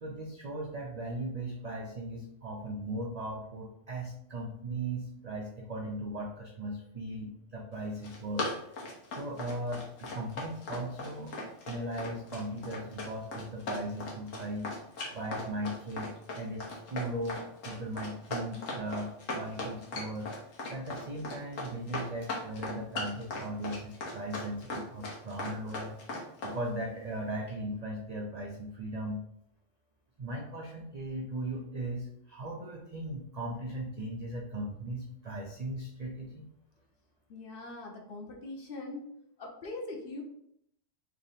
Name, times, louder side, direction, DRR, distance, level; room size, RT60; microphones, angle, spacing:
voice 1, 0.0-8.5 9.1-11.3 11.6-14.7 15.1-17.4 17.6-20.3 20.7-26.0 26.4-29.2 30.2-36.4, right 1 dB, 65° right, 0 dB, 0.4 m, -38 dB
Run, 7.8-26.6, left 2 dB, 90° left, 1.3 m, -38 dB
voice 2, 37.3-39.0 39.4-40.2, left 2 dB, 55° left, 0 dB, 0.8 m, -41 dB
3.3 x 2.6 x 4.0 m, 0.75 s
omnidirectional pair, 1.3 m